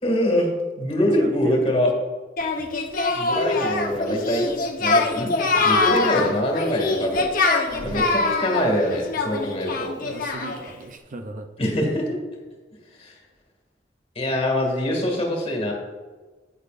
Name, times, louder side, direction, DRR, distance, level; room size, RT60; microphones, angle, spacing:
voice 1, 0.0-0.5 0.8-1.9 3.1-4.5 4.8-7.2 7.8-9.9 11.6-12.2 13.0-13.1 14.2-15.7, left 1 dB, 35° left, 0 dB, 2.2 m, -24 dB
voice 2, 1.0-2.0 3.9-4.2 6.0-6.4 7.7-8.2 10.0-11.5, right 3 dB, 45° right, 6 dB, 0.5 m, -36 dB
Singing, 2.4-10.7, left 3 dB, 50° left, 1.0 m, -23 dB
11.0 x 8.5 x 2.6 m, 1.3 s
head